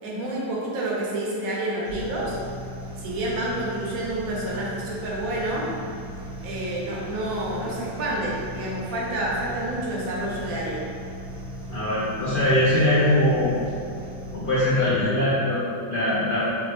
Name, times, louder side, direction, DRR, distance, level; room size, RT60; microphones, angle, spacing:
voice 1, 0.0-2.4 3.0-5.7 6.4-10.8, right 1 dB, 75° right, -4 dB, 1.0 m, -29 dB
sound 1, 1.8-14.8, equal, 50° right, 0.5 m, -37 dB
voice 2, 11.7-13.6 14.3-16.4, left 1 dB, 60° left, -11 dB, 0.5 m, -22 dB
3.2 x 2.1 x 3.2 m, 2.4 s
omnidirectional pair, 1.6 m